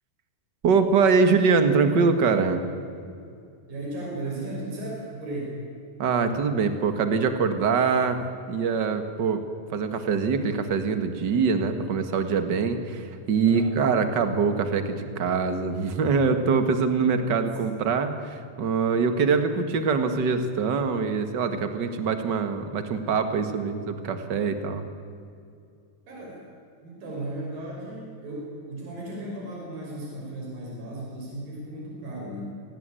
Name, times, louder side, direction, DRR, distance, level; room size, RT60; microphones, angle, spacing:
voice 1, 0.6-2.6 6.0-8.2 8.5-9.4 9.7-24.8, right 5 dB, 40° right, 8 dB, 1.6 m, -24 dB
voice 2, 3.7-5.6 13.4-13.7 26.1-26.4 26.8-32.6, right 1 dB, 70° right, -3 dB, 7.6 m, -35 dB
26.0 x 18.0 x 9.1 m, 2.4 s
omnidirectional pair, 4.2 m